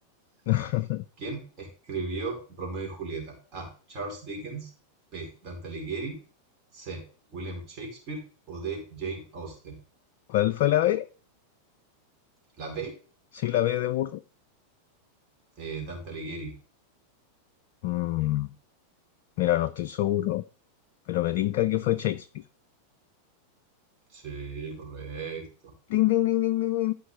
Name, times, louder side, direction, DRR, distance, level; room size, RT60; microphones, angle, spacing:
voice 1, 0.5-1.0 10.3-11.1 13.3-14.2 17.8-18.5 19.4-20.4 21.1-22.4 25.9-26.9, left 14 dB, 50° left, 0.3 m, -25 dB
voice 2, 1.2-4.7 5.1-6.2 6.7-7.0 7.3-9.8 12.6-12.9 15.6-16.5 24.1-25.7, right 4 dB, 35° right, 4.2 m, -36 dB
14.0 x 5.1 x 3.9 m
figure-of-eight pair, 90°, 0 cm